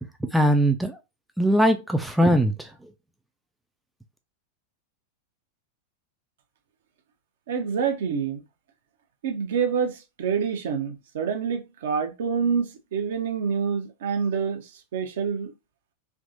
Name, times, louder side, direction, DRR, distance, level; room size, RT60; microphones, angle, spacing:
voice 1, 0.3-1.0 1.4-2.7, equal, 5° right, 0.4 m, -20 dB
voice 2, 7.5-8.4 9.2-15.5, right 6 dB, 60° right, 0.6 m, -27 dB
3.4 x 2.7 x 2.6 m
figure-of-eight pair, 90°, 0 cm